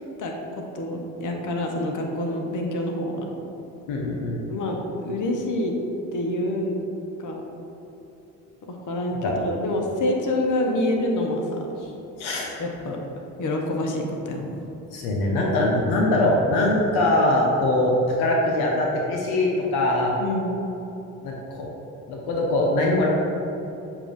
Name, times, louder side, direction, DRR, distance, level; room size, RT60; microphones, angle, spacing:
voice 1, 0.2-3.3 4.5-5.7 6.1-6.8 7.2-7.4 8.7-11.7 12.6-13.0 13.4-14.6 20.2-20.5, left 1 dB, 50° left, 1 dB, 1.0 m, -27 dB
voice 2, 3.9-4.4 9.2-9.3 12.2-12.5 14.9-20.1 21.2-21.7 22.1-23.1, left 1 dB, 75° left, -1 dB, 0.9 m, -22 dB
7.3 x 2.7 x 5.0 m, 3.0 s
hypercardioid pair, 55°, 39 cm